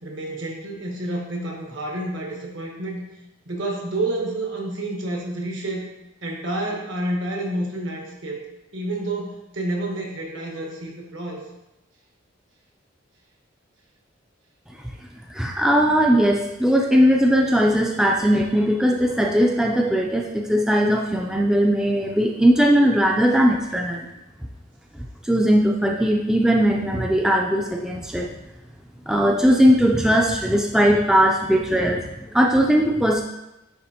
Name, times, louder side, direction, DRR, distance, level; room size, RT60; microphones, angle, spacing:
voice 1, 0.0-3.0 3.4-5.8 6.2-8.4 8.7-11.4, right 1 dB, 70° right, -1 dB, 1.3 m, -29 dB
voice 2, 15.3-24.1 25.2-28.3 29.1-33.2, equal, 5° right, 0 dB, 0.3 m, -19 dB
10.0 x 3.4 x 2.9 m, 0.95 s
head